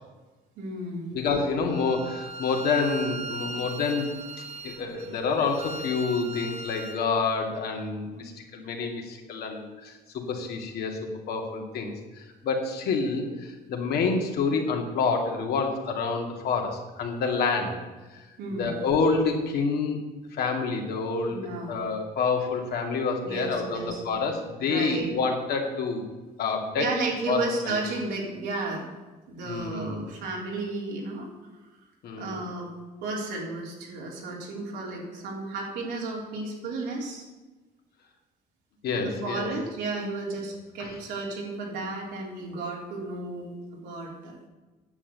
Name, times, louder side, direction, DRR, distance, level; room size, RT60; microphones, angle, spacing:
voice 1, 0.6-1.1 18.4-18.8 21.3-21.8 23.2-24.0 24.6-25.1 26.8-28.9 29.3-31.3 32.2-32.7 33.0-37.3 38.9-44.5, right 3 dB, 85° right, -2 dB, 3.6 m, -33 dB
voice 2, 1.1-4.1 4.6-17.7 18.5-20.0 20.3-26.0 26.4-26.9 27.3-27.9 29.4-30.1 32.0-32.3 38.8-39.5 40.8-40.9, left 4 dB, 70° left, 1 dB, 2.5 m, -28 dB
Bowed string instrument, 1.7-7.1, right 2 dB, 40° right, 1.2 m, -39 dB
9.8 x 7.5 x 8.1 m, 1.2 s
cardioid pair, 110°, 17 cm